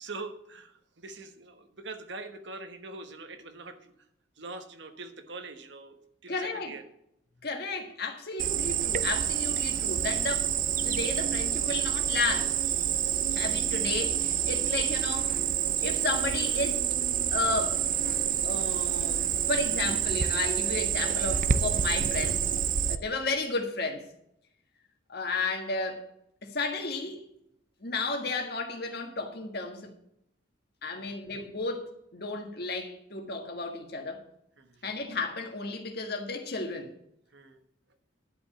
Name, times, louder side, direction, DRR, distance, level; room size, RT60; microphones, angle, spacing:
voice 1, 0.0-3.9 4.4-6.0 6.2-6.8 13.0-13.3 30.9-31.2 34.6-34.8 37.3-37.6, right 3 dB, 65° right, 1.3 m, -43 dB
voice 2, 6.3-6.7 7.4-10.5 10.8-12.6 13.3-15.3 15.8-16.8 17.3-17.8 18.4-22.4 22.9-24.0 25.1-26.0 26.4-27.2 27.8-29.9 30.8-34.2 34.8-36.9, left 3 dB, 50° left, 1.7 m, -33 dB
Cricket, 8.4-23.0, right 9 dB, 40° right, 0.5 m, -28 dB
11.0 x 5.3 x 7.1 m
head